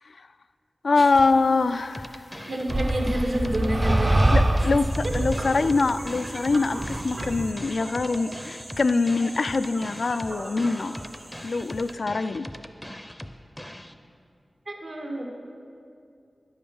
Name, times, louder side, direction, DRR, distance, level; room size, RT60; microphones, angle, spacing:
voice 1, 0.8-2.1 4.3-4.9 5.1-11.0 11.4-12.5, left 3 dB, 70° left, 12 dB, 0.3 m, -24 dB
sound 1, 1.0-1.2 2.7-7.5, right 1 dB, 35° right, 0.6 m, -25 dB
sound 2, 1.9-13.9, equal, 10° left, 0.5 m, -40 dB
voice 2, 2.5-4.3 5.0-5.1 14.7-15.2, right 1 dB, 75° right, 0 dB, 1.7 m, -28 dB
sound 3, 4.9-11.9, right 1 dB, 55° right, 2.0 m, -42 dB
10.0 x 5.5 x 7.0 m, 2.4 s
wide cardioid pair, 60°, 0 cm